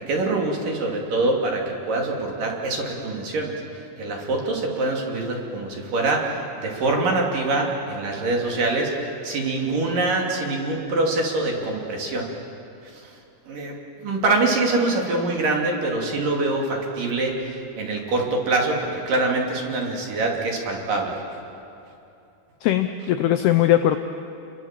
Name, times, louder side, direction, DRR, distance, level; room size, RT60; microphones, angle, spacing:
voice 1, 0.0-3.5 4.0-12.3 13.5-21.2, right 2 dB, 50° right, 0 dB, 4.0 m, -24 dB
voice 2, 22.6-24.0, left 12 dB, 85° left, 8 dB, 2.3 m, -19 dB
29.5 x 23.0 x 7.6 m, 2.7 s
omnidirectional pair, 5.6 m